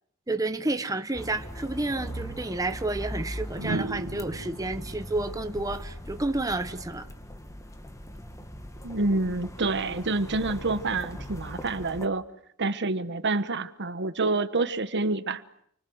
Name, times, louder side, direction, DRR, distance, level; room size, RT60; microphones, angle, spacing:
voice 1, 0.3-7.1, right 2 dB, 15° right, 1.2 m, -30 dB
sound 1, 1.1-12.1, equal, 15° left, 1.9 m, -40 dB
sound 2, 2.1-2.2 3.5-6.6 8.2-8.5, right 2 dB, 90° right, 1.8 m, -37 dB
voice 2, 8.8-12.2 12.6-15.4, right 3 dB, 55° right, 1.3 m, -27 dB
29.0 x 24.5 x 7.9 m
head